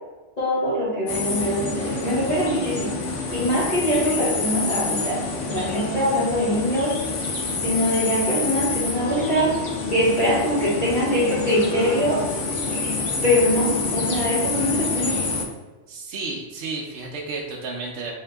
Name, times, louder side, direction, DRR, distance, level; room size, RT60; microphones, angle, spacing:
voice 1, 0.4-3.0 3.3-6.9 7.6-9.5 9.9-12.2 13.2-15.2, equal, 35° left, -11 dB, 1.1 m, -23 dB
sound 1, 1.1-15.4, left 3 dB, 85° left, 1.1 m, -27 dB
voice 2, 15.9-18.1, right 3 dB, 70° right, -2 dB, 0.9 m, -32 dB
3.8 x 2.7 x 3.3 m, 1.2 s
omnidirectional pair, 1.2 m